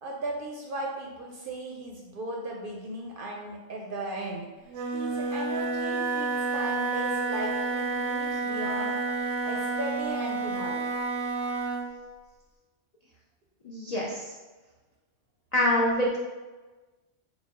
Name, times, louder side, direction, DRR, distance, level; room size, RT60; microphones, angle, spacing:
voice 1, 0.0-4.5 4.9-9.0 9.4-10.9, right 1 dB, 60° right, -1 dB, 0.6 m, -36 dB
Wind instrument woodwind instrument, 4.7-11.9, right 3 dB, 85° right, 0.9 m, -30 dB
voice 2, 13.6-14.3 15.5-16.2, left 1 dB, 65° left, -3 dB, 0.4 m, -25 dB
4.0 x 2.2 x 4.2 m, 1.3 s
omnidirectional pair, 1.3 m